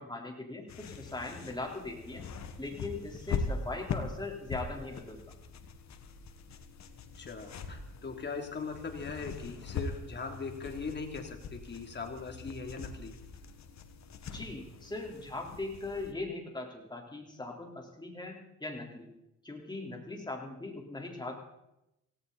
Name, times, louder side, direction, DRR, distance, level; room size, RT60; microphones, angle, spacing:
voice 1, 0.0-2.3 2.6-5.2 14.3-19.1 19.4-21.4, left 2 dB, 15° left, 1 dB, 4.2 m, -40 dB
sound 1, 0.7-16.1, left 4 dB, 65° left, 1.8 m, -42 dB
voice 2, 7.2-13.2, left 4 dB, 35° left, 4 dB, 3.2 m, -40 dB
17.5 x 17.0 x 4.3 m, 0.87 s
cardioid pair, 90°, 30 cm